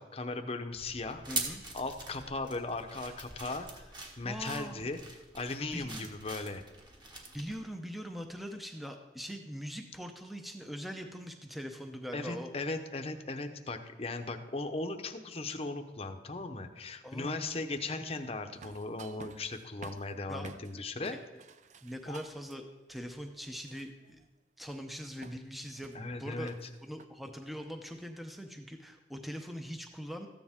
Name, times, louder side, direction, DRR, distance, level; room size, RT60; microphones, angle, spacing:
voice 1, 0.0-1.5 1.7-3.8 4.2-5.0 5.3-6.6 12.1-21.2 22.1-22.2 25.9-26.5, left 3 dB, 35° left, 7 dB, 0.8 m, -37 dB
sound 1, 0.7-7.6, right 2 dB, 25° right, 1.4 m, -43 dB
voice 2, 1.3-1.6 4.2-4.9 5.7-6.1 7.3-12.5 17.0-17.6 20.3-20.5 21.1-21.2 21.8-22.6 22.9-24.2 24.6-26.5 26.8-30.3, equal, ahead, 4 dB, 0.6 m, -42 dB
sound 2, 18.5-20.8 21.0-22.6 23.2-24.2 25.2-27.1, right 4 dB, 40° right, 0.4 m, -53 dB
14.0 x 9.7 x 3.6 m, 1.1 s
head